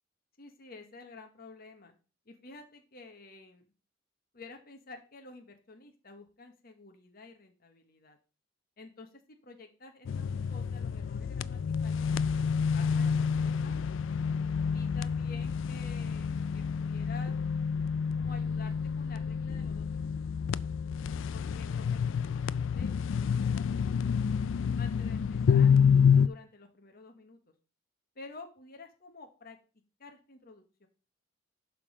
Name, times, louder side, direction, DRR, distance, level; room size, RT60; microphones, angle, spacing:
voice 1, 0.4-1.9 2.3-3.6 4.3-8.2 8.8-12.1 12.7-13.9 14.7-17.3 18.2-20.3 21.3-23.2 23.5-24.0 24.8-27.4 28.1-29.6 30.0-30.9, left 3 dB, 50° left, 4 dB, 1.1 m, -51 dB
sound 1, 10.1-26.3, left 6 dB, 70° left, 0.3 m, -28 dB
11.0 x 3.8 x 5.0 m, 0.35 s
head